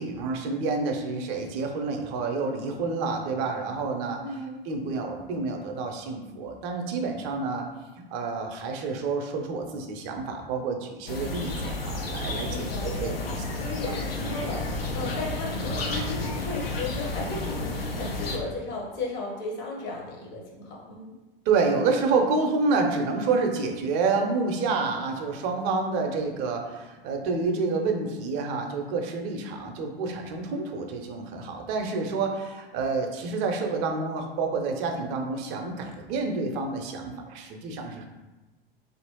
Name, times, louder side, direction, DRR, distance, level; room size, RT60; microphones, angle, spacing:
voice 1, 0.0-4.4 4.6-7.6 8.1-13.4 13.9-14.0 14.2-14.3 21.5-38.0, right 4 dB, 40° right, 3 dB, 0.5 m, -28 dB
voice 2, 4.2-4.6 12.5-21.1, left 2 dB, 35° left, -2 dB, 0.8 m, -35 dB
sound 1, 11.1-18.4, left 2 dB, 80° left, 0.5 m, -31 dB
2.9 x 2.5 x 2.9 m, 1.1 s
figure-of-eight pair, 85°, 29 cm